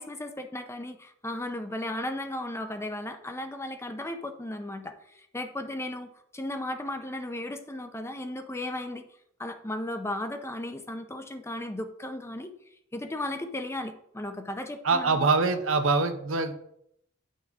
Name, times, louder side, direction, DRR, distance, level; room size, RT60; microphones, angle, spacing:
voice 1, 0.0-9.0 9.4-12.5 12.9-15.3, left 1 dB, 15° left, 8 dB, 0.6 m, -35 dB
voice 2, 14.8-16.5, right 4 dB, 75° right, 8 dB, 0.8 m, -24 dB
9.4 x 5.5 x 3.6 m, 0.73 s
head